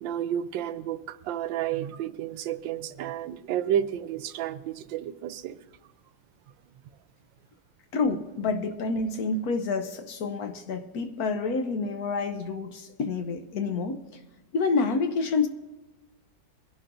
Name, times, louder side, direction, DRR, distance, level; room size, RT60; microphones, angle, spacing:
voice 1, 0.0-5.6, right 10 dB, 90° right, 13 dB, 1.3 m, -31 dB
voice 2, 7.9-14.0 14.5-15.5, left 4 dB, 60° left, 8 dB, 1.1 m, -28 dB
23.5 x 11.0 x 2.6 m, 1.1 s
omnidirectional pair, 2.0 m